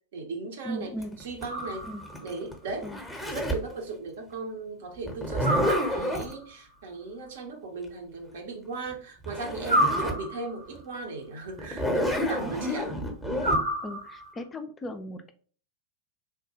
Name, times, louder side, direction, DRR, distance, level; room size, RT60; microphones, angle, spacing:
voice 1, 0.1-0.9 1.2-1.9 2.2-2.9 3.3-12.9, right 3 dB, 55° right, 3 dB, 0.8 m, -37 dB
voice 2, 0.6-1.1 1.9-2.0 2.8-3.0 13.8-15.3, equal, 20° left, 7 dB, 0.4 m, -37 dB
Zipper (clothing), 1.0-3.7 5.1-6.3 8.9-9.0 9.2-10.2 10.7-10.8 11.6-13.6, equal, 5° right, 0.8 m, -29 dB
sound 1, 1.5-2.3 5.4-6.4 9.7-10.7 13.4-14.4, right 1 dB, 90° right, 1.1 m, -29 dB
3.4 x 2.2 x 2.9 m, 0.43 s
figure-of-eight pair, 90°, 0 cm